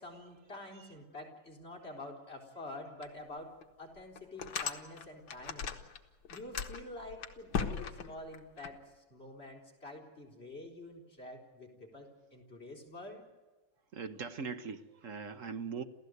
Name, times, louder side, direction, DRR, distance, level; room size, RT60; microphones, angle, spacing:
voice 1, 0.0-5.7 6.3-13.2, left 1 dB, 25° left, 0 dB, 4.4 m, -47 dB
sound 1, 3.0-3.1 3.6-3.7 4.2-6.0 6.2-8.7, left 6 dB, 65° left, 2.1 m, -38 dB
voice 2, 13.9-15.8, right 5 dB, 45° right, 10 dB, 1.2 m, -40 dB
28.5 x 15.0 x 8.1 m, 1.2 s
omnidirectional pair, 2.4 m